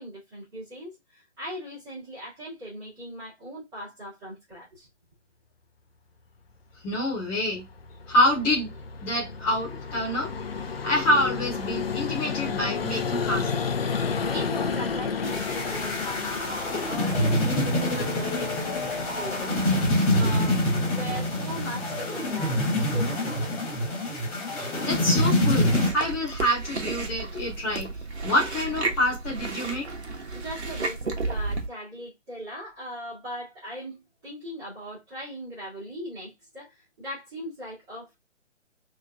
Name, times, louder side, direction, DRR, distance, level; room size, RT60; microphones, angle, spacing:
voice 1, 0.0-4.9 14.3-19.9 20.1-23.4 30.3-38.2, equal, 20° right, 2.5 m, -39 dB
voice 2, 6.8-7.7 8.1-8.7 9.0-10.3 10.8-13.7 24.5-27.9 28.2-29.9, left 1 dB, 5° left, 0.7 m, -26 dB
Vehicle, 7.2-21.9, left 5 dB, 50° left, 0.7 m, -32 dB
sound 1, 15.2-25.9, left 1 dB, 30° left, 2.1 m, -26 dB
Chewing mastication, 25.6-31.7, right 3 dB, 60° right, 1.3 m, -32 dB
5.4 x 3.2 x 2.4 m
figure-of-eight pair, 140°, 37 cm